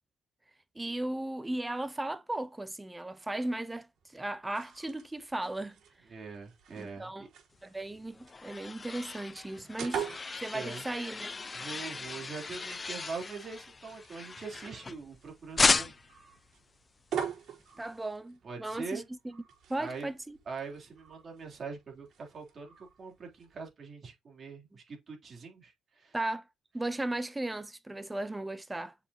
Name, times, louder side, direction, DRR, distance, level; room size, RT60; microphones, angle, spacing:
voice 1, 0.7-3.9 4.1-5.7 6.7-7.3 7.6-10.1 10.4-11.3 17.8-19.4 19.7-20.4 26.1-26.4 26.7-28.9, right 1 dB, 15° right, 0.9 m, -36 dB
sound 1, 4.0-23.7, right 8 dB, 70° right, 4.7 m, -45 dB
voice 2, 6.1-7.3 10.5-10.8 11.5-15.9 18.4-19.1 19.8-20.1 20.5-26.2, right 4 dB, 45° right, 3.7 m, -43 dB
sound 2, 7.8-15.2 15.6-16.2, left 4 dB, 30° left, 0.4 m, -34 dB
7.0 x 5.5 x 3.0 m
cardioid pair, 95°, 0 cm